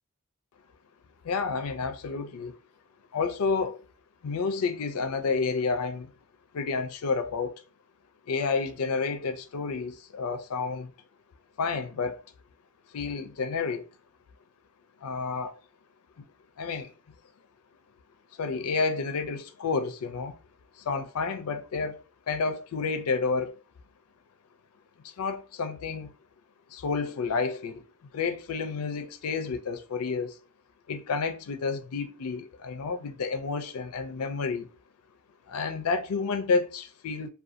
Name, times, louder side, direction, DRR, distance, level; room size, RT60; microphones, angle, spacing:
voice 1, 1.2-2.6 3.1-3.8 4.2-6.1 6.5-7.5 8.3-10.9 11.6-12.2 12.9-13.8 15.0-15.5 16.6-16.9 18.4-20.3 20.8-23.6 25.0-26.1 26.7-27.8 28.1-30.4 30.9-34.7 35.5-37.3, left 4 dB, 85° left, 0.4 m, -30 dB
2.6 x 2.2 x 2.5 m
head